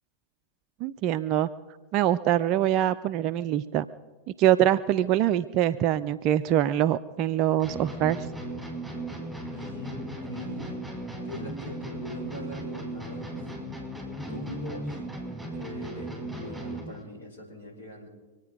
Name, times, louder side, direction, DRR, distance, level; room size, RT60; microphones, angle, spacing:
voice 1, 0.8-1.5 1.9-3.8 4.4-8.3, right 12 dB, 40° right, 11 dB, 0.4 m, -24 dB
sound 1, 7.6-17.0, right 1 dB, ahead, 4.9 m, -37 dB
voice 2, 9.5-13.5 14.1-15.0 15.5-18.1, left 1 dB, 65° left, 0 dB, 4.9 m, -41 dB
25.0 x 9.0 x 5.3 m, 1.2 s
figure-of-eight pair, 90°, 0 cm